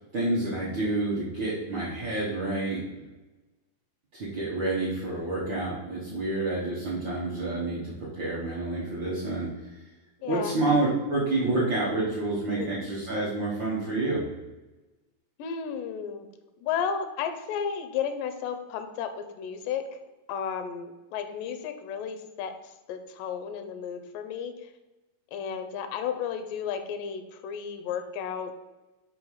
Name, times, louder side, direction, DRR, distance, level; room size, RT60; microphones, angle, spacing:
voice 1, 0.1-3.0 4.1-9.5 10.2-14.2, right 2 dB, 70° right, -7 dB, 1.1 m, -28 dB
voice 2, 10.2-10.5 12.5-12.7 15.4-16.3 16.6-19.8 20.3-22.5 22.9-24.5 25.3-28.6, left 7 dB, 80° left, 7 dB, 2.2 m, -33 dB
5.3 x 4.7 x 5.5 m, 1.1 s
omnidirectional pair, 4.1 m